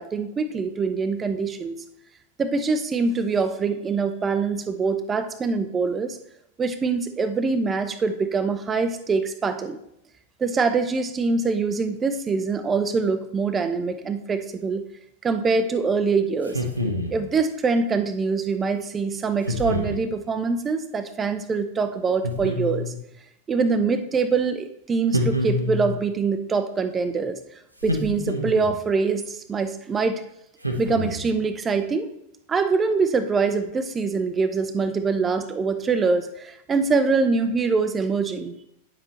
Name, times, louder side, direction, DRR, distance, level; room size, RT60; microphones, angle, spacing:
voice 1, 0.0-1.7 2.4-6.2 6.6-9.8 10.4-14.8 15.2-16.6 17.1-22.9 23.5-27.4 27.8-30.2 30.8-32.1 32.5-38.5, right 4 dB, 20° right, 9 dB, 0.7 m, -24 dB
sound 1, 16.4-17.3 19.4-20.1 22.2-23.0 25.1-26.0 27.8-28.8 30.6-31.4, left 1 dB, 85° right, 1.1 m, -27 dB
9.7 x 7.3 x 3.2 m, 0.79 s
figure-of-eight pair, 90°, 0 cm